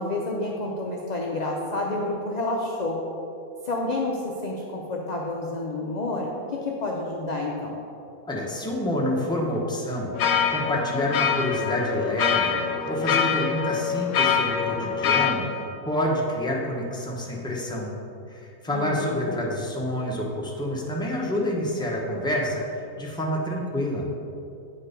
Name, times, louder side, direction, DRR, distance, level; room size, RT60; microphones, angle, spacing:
voice 1, 0.0-3.0 3.6-7.8 18.7-19.3, left 2 dB, 50° left, -1 dB, 0.5 m, -29 dB
voice 2, 8.2-10.1 10.5-12.6 12.9-15.6 15.9-17.9 18.3-22.6 22.9-24.1, left 1 dB, 5° left, -2 dB, 0.7 m, -28 dB
sound 1, 10.1-15.4, left 7 dB, 85° left, 1.1 m, -24 dB
8.5 x 4.6 x 5.0 m, 2.7 s
omnidirectional pair, 1.5 m